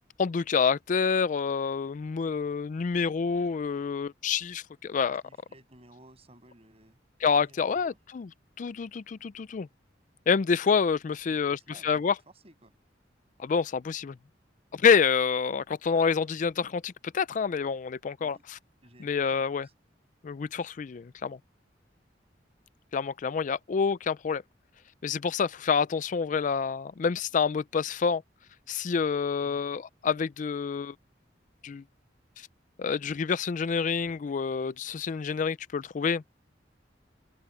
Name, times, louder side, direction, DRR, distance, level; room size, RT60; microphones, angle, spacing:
voice 1, 0.2-5.2 7.2-8.3 8.6-9.7 10.3-12.1 13.4-14.2 14.7-18.6 19.0-19.7 20.2-21.4 22.9-24.4 25.0-28.2 28.7-30.9 31.6-31.8 32.4-32.5 32.8-36.2, left 6 dB, 45° left, 0.4 m, -27 dB
voice 2, 5.2-7.0 7.4-8.0 11.1-12.7 18.2-18.4 18.8-19.7 29.4-29.7, right 1 dB, 35° right, 7.0 m, -56 dB
open air
head